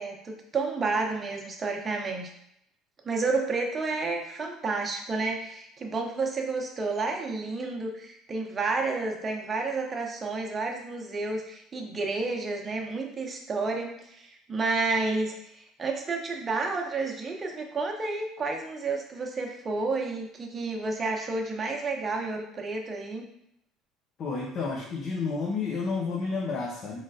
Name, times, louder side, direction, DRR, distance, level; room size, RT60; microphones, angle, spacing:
voice 1, 0.0-2.3 3.0-23.3, right 3 dB, 30° right, 1 dB, 0.8 m, -30 dB
voice 2, 24.2-27.0, left 4 dB, 50° left, -2 dB, 0.7 m, -30 dB
3.8 x 3.3 x 2.6 m, 0.75 s
hypercardioid pair, 75°, 0 cm